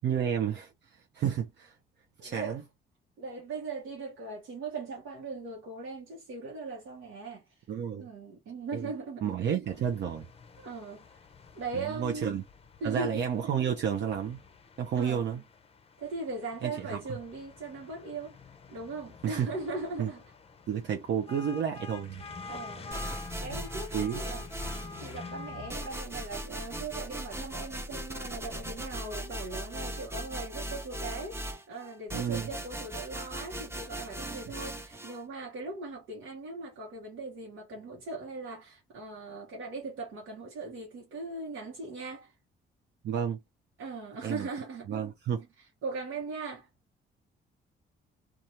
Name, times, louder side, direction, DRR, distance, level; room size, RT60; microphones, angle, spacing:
voice 1, 0.0-1.7 2.2-2.6 7.7-8.1 8.7-8.8 9.2-10.3 11.8-12.4 12.8-14.4 14.8-15.4 16.6-17.0 19.2-19.5 20.0-20.1 20.7-22.2 23.5-23.7 23.9-24.2 32.1-32.5 43.0-43.4 44.2-44.5 44.9-45.5, right 8 dB, 60° right, 0.6 m, -31 dB
voice 2, 2.2-2.6 3.2-7.6 8.0-9.4 10.6-11.2 11.5-12.4 12.8-13.2 14.9-15.4 16.0-18.4 18.7-20.2 22.5-24.7 25.0-42.4 43.8-45.0 45.6-46.7, right 3 dB, 85° right, 1.0 m, -39 dB
sound 1, 9.6-25.9, left 4 dB, 30° left, 0.6 m, -48 dB
sound 2, 22.9-25.2 25.7-35.2, right 1 dB, 10° right, 0.7 m, -38 dB
2.7 x 2.4 x 2.9 m
cardioid pair, 90°, 20 cm